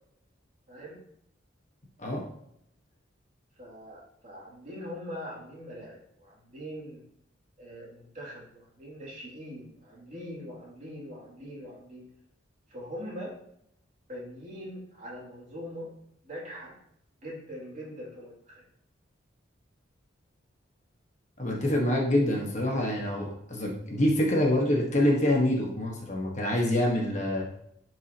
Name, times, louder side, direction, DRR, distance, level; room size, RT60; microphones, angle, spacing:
voice 1, 0.7-1.0 3.6-7.0 7.6-12.0 12.7-13.3 14.1-15.9 16.2-16.7 17.2-18.6, equal, 40° right, -5 dB, 2.7 m, -42 dB
voice 2, 21.4-27.4, left 1 dB, 35° left, -1 dB, 1.4 m, -26 dB
11.5 x 4.8 x 2.9 m, 0.74 s
head